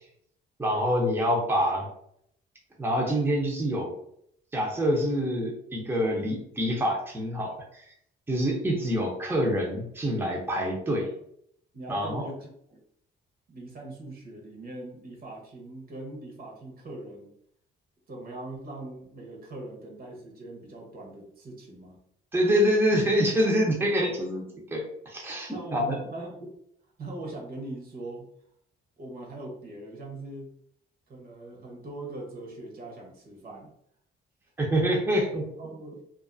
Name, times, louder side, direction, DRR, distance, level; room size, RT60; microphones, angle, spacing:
voice 1, 0.6-1.9 2.8-3.9 4.5-7.9 8.3-11.1 11.9-12.2 22.3-26.0 34.6-35.5, equal, 10° right, -1 dB, 0.6 m, -26 dB
voice 2, 11.7-12.8 13.5-17.3 18.1-22.0 25.5-26.5 27.0-28.3 29.0-30.5 31.1-33.7 35.6-36.0, right 2 dB, 50° right, 0 dB, 0.8 m, -41 dB
2.5 x 2.3 x 2.5 m, 0.71 s
cardioid pair, 90°, 20 cm